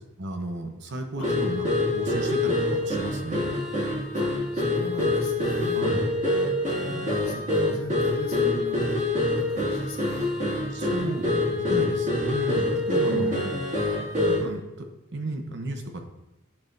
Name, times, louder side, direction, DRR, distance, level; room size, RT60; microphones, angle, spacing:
voice 1, 0.2-3.6 5.7-6.1 6.9-7.1 10.7-13.3 14.3-14.9 15.1-16.0, right 2 dB, 60° right, 5 dB, 0.9 m, -34 dB
sound 1, 1.2-14.5, left 2 dB, 35° right, 2.3 m, -26 dB
voice 2, 4.5-5.8 6.7-9.0 9.5-10.3 13.1-13.7, left 2 dB, 85° left, 0 dB, 1.4 m, -38 dB
10.5 x 4.7 x 2.6 m, 0.97 s
head